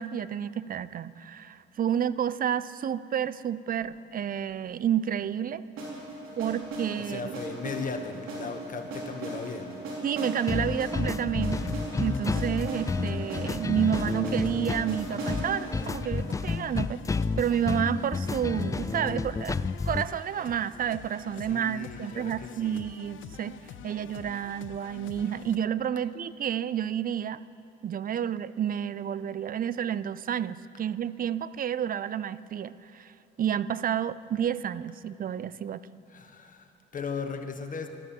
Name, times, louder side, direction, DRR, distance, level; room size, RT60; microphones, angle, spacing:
voice 1, 0.0-5.6 6.4-7.3 10.0-19.6 19.9-23.6 23.8-27.4 27.8-35.8, right 9 dB, 45° right, 17 dB, 0.5 m, -30 dB
marching snare with reverb, 5.8-17.7, right 2 dB, 85° right, 3.9 m, -38 dB
voice 2, 7.0-9.7 21.5-22.8 36.1-37.9, left 5 dB, 40° left, 6 dB, 1.6 m, -37 dB
sound 1, 10.5-20.1, left 4 dB, 15° left, 0.3 m, -31 dB
sound 2, 11.5-25.6, left 9 dB, 75° left, 0.6 m, -46 dB
13.0 x 13.0 x 7.3 m, 3.0 s
cardioid pair, 90°, 20 cm